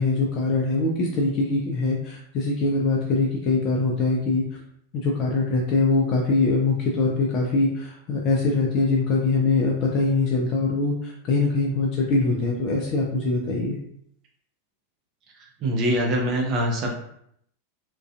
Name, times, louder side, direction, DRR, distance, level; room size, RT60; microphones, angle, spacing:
voice 1, 0.0-4.4 4.9-13.8, left 3 dB, 35° left, -2 dB, 0.4 m, -23 dB
voice 2, 15.6-16.9, equal, 35° right, 0 dB, 0.6 m, -23 dB
2.4 x 2.2 x 2.3 m, 0.70 s
figure-of-eight pair, 90°, 0 cm